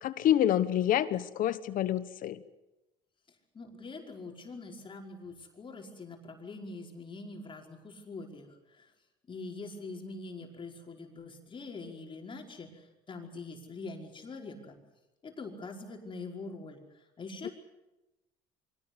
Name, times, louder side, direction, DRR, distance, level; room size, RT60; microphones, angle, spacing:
voice 1, 0.0-2.4, left 11 dB, 55° left, 14 dB, 1.2 m, -27 dB
voice 2, 3.5-8.9 9.3-14.8 15.2-17.5, left 3 dB, 30° left, 1 dB, 5.1 m, -44 dB
24.5 x 18.0 x 9.8 m, 1.0 s
supercardioid pair, 95°, 16 cm